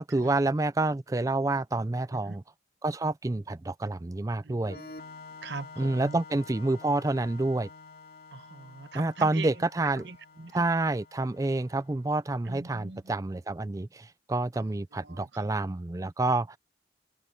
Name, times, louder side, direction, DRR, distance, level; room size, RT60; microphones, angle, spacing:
voice 1, 0.0-2.4 2.8-4.8 5.8-7.7 8.9-10.0 10.5-16.6, right 2 dB, 20° right, 0.4 m, -28 dB
voice 2, 4.4-4.9 5.4-6.2 8.3-9.5 9.9-10.6 12.4-13.0 14.6-15.5, right 4 dB, 70° right, 1.0 m, -42 dB
Organ, 4.6-12.2, left 4 dB, 55° left, 3.1 m, -49 dB
open air
head